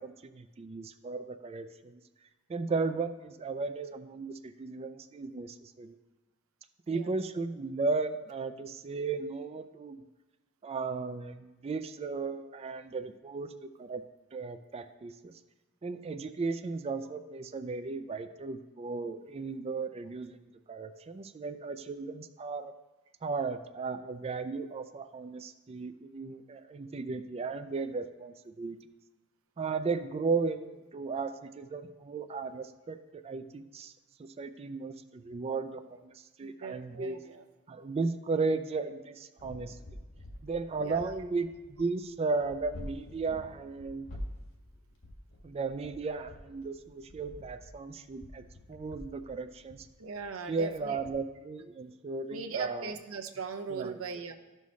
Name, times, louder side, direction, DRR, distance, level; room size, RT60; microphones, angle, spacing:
voice 1, 0.0-2.0 2.5-6.0 6.9-10.0 10.6-14.0 14.3-15.3 15.8-22.7 23.2-28.9 29.6-33.9 34.2-37.2 37.7-39.8 40.4-44.1 45.4-48.4 48.7-49.9 50.5-52.9 53.7-54.0, right 4 dB, 30° right, 9 dB, 0.3 m, -35 dB
voice 2, 36.4-37.4 40.8-41.1 50.0-51.0 52.3-54.3, right 5 dB, 70° right, 5 dB, 0.7 m, -39 dB
sound 1, 39.4-51.1, left 1 dB, 65° left, 1.9 m, -48 dB
13.5 x 5.5 x 3.1 m, 1.1 s
head